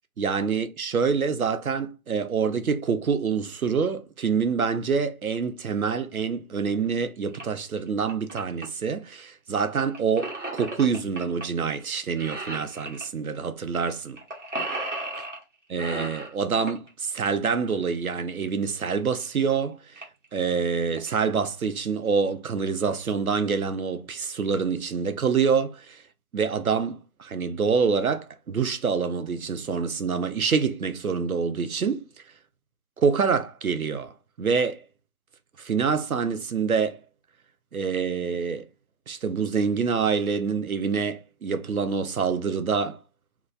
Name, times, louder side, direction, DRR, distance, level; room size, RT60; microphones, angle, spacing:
voice 1, 0.2-14.2 15.7-20.0 20.3-26.0 26.3-32.1 33.0-34.1 34.4-34.8 35.6-37.0 37.7-38.6 39.1-43.0, right 5 dB, 75° right, 0.5 m, -26 dB
sound 1, 7.3-7.4 7.9-8.6 9.8-11.4 11.7-11.9 12.2-13.1 13.8-13.9 14.2-15.4 15.8-16.9 18.5-18.6 19.2-19.3 19.5-19.6 20.0-20.2 20.7-21.1, right 2 dB, 55° right, 1.1 m, -34 dB
2.9 x 2.2 x 2.4 m
figure-of-eight pair, 170°, 44 cm